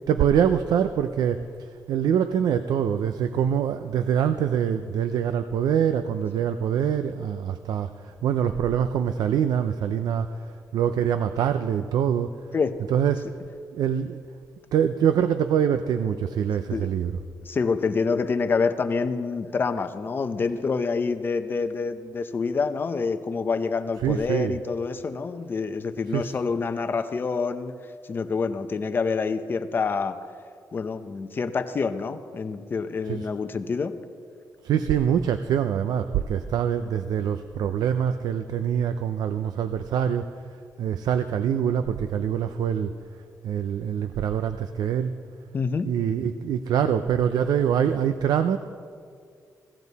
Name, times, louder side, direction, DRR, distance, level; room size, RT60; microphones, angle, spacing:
voice 1, 0.1-12.3 12.9-13.3 13.7-14.2 14.7-17.1 24.0-24.5 26.1-26.3 33.0-33.3 34.6-42.9 43.4-45.1 45.8-48.6, right 8 dB, 80° right, 10 dB, 0.5 m, -24 dB
voice 2, 17.4-27.7 28.1-30.2 30.7-34.0 45.5-45.9, left 4 dB, 30° left, 9 dB, 0.6 m, -27 dB
16.5 x 15.5 x 4.1 m, 2.2 s
wide cardioid pair, 160°, 7 cm